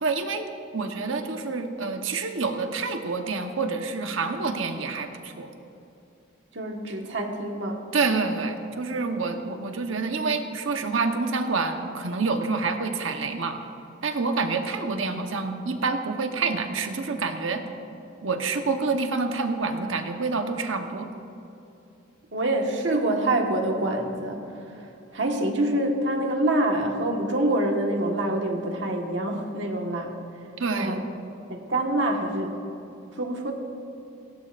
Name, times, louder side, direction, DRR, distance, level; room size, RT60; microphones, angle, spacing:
voice 1, 0.0-5.5 7.9-13.6 14.0-17.6 18.2-21.1 30.6-31.0, right 4 dB, 85° right, 5 dB, 1.1 m, -27 dB
voice 2, 6.5-7.8 22.3-30.1 30.8-31.0 31.5-32.6 33.2-33.5, right 1 dB, 65° right, 1 dB, 1.6 m, -26 dB
18.0 x 16.5 x 2.6 m, 2.7 s
head